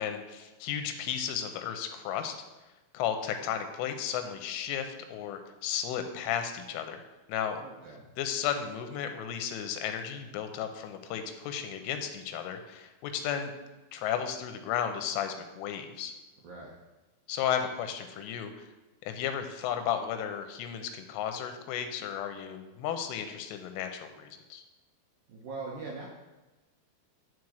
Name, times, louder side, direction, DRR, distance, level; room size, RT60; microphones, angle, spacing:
voice 1, 0.0-2.3 2.9-7.0 7.3-7.6 8.2-13.5 13.9-16.1 17.3-18.7 19.1-24.6, left 9 dB, 85° left, 7 dB, 3.3 m, -34 dB
voice 2, 7.6-8.0 16.4-16.8 25.3-26.1, right 3 dB, 70° right, -3 dB, 2.1 m, -41 dB
11.0 x 4.6 x 6.4 m, 1.1 s
omnidirectional pair, 5.6 m